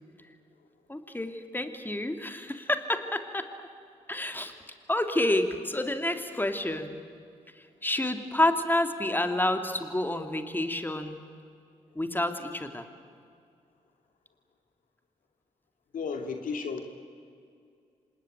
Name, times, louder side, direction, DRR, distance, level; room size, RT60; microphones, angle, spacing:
voice 1, 0.9-3.7 4.1-4.5 4.9-7.0 7.8-11.2 11.9-12.9, left 1 dB, 15° left, 7 dB, 2.7 m, -29 dB
voice 2, 15.9-16.8, left 5 dB, 70° left, 5 dB, 2.5 m, -33 dB
26.5 x 19.5 x 9.3 m, 2.4 s
supercardioid pair, 45°, 14 cm